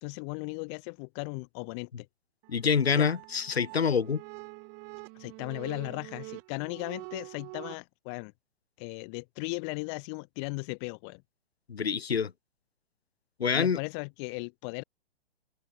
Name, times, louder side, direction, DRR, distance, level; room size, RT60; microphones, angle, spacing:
voice 1, 0.0-2.1 2.9-3.1 5.2-8.3 8.8-11.2 13.5-14.8, left 35 dB, 25° left, 0.8 m, -37 dB
sound 1, 2.4-7.8, right 34 dB, 30° right, 6.6 m, -45 dB
voice 2, 2.5-4.2 11.7-12.3 13.4-13.8, left 6 dB, 75° left, 1.2 m, -26 dB
open air
figure-of-eight pair, 120°, 31 cm